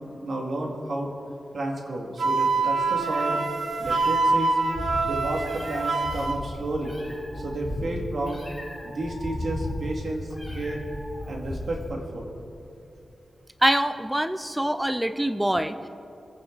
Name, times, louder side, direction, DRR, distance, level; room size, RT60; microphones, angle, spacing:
voice 1, 0.1-1.1 1.5-3.4 3.8-4.6 5.0-7.0 7.3-8.4 8.8-10.8 11.3-12.3, right 1 dB, 60° right, 0 dB, 2.3 m, -31 dB
Wind instrument woodwind instrument, 2.2-6.4, right 3 dB, 75° right, 1.4 m, -25 dB
Meow, 2.5-11.9, left 1 dB, 10° left, 3.9 m, -36 dB
voice 2, 13.6-15.9, right 1 dB, 5° right, 10 dB, 0.5 m, -24 dB
26.0 x 9.5 x 4.0 m, 2.6 s
wide cardioid pair, 105°, 0 cm